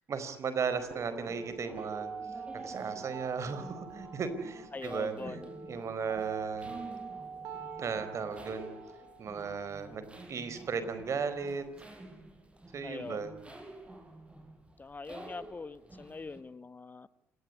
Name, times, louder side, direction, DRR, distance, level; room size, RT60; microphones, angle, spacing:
voice 1, 0.1-2.1 2.5-6.8 7.8-8.7 9.2-11.6 12.7-13.3, right 5 dB, 45° right, 11 dB, 4.5 m, -36 dB
sound 1, 0.7-16.4, right 2 dB, 15° right, 6.2 m, -50 dB
sound 2, 0.9-10.9, right 5 dB, 65° right, 3.9 m, -45 dB
voice 2, 4.7-5.5 12.8-13.2 14.8-17.1, left 4 dB, 25° left, 16 dB, 1.1 m, -43 dB
27.5 x 19.0 x 9.8 m, 0.80 s
hypercardioid pair, 50°, 7 cm